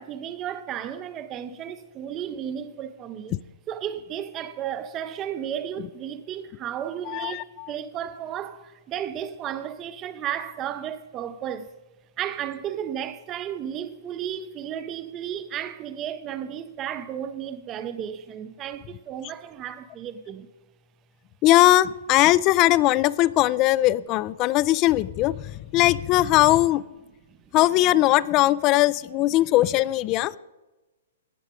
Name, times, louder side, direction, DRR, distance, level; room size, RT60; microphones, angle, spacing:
voice 1, 0.0-3.4 3.7-11.7 12.2-20.5 27.3-27.4, right 9 dB, 25° right, 0.5 m, -33 dB
voice 2, 7.0-7.7 21.4-26.8 27.5-30.3, left 16 dB, 35° left, 0.3 m, -20 dB
16.5 x 6.2 x 3.7 m
figure-of-eight pair, 115°, 0 cm